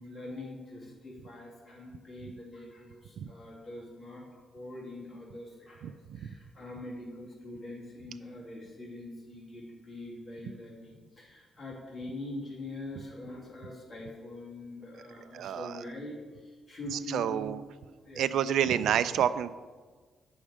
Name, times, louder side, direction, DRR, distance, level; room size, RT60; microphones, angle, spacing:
voice 1, 0.0-17.5 18.0-18.3, left 1 dB, 25° left, -5 dB, 2.6 m, -43 dB
voice 2, 5.8-6.3 15.3-15.7 16.9-17.6 18.2-19.5, right 9 dB, 80° right, 13 dB, 0.3 m, -29 dB
8.6 x 6.2 x 4.9 m, 1.4 s
cardioid pair, 120°, 0 cm